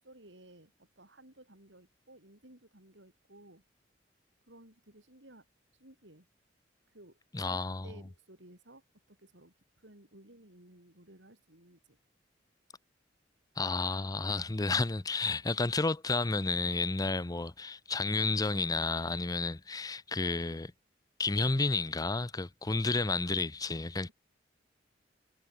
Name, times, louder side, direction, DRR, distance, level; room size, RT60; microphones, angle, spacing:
voice 1, 0.0-3.6 4.5-5.5 5.8-6.3 6.9-8.8 9.1-12.0, right 1 dB, 70° right, 7.2 m, -57 dB
voice 2, 7.3-7.9 13.6-20.7 21.2-24.1, left 3 dB, 20° left, 0.6 m, -31 dB
head